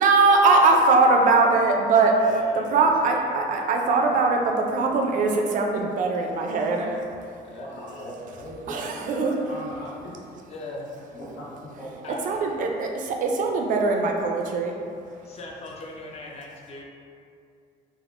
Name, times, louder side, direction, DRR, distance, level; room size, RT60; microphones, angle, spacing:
voice 1, 0.0-2.1 2.7-7.1 8.7-9.3 12.3-14.7, right 3 dB, 50° right, 2 dB, 0.4 m, -21 dB
voice 2, 2.1-2.7 3.1-3.3 3.5-3.7 7.4-7.8 10.5-10.9 12.0-12.5 15.1-16.8, left 2 dB, 40° left, -2 dB, 0.5 m, -39 dB
voice 3, 7.5-10.1 11.1-11.4 11.8-11.9, equal, 85° left, -8 dB, 1.0 m, -39 dB
3.5 x 2.0 x 2.4 m, 2.4 s
cardioid pair, 110°, 17 cm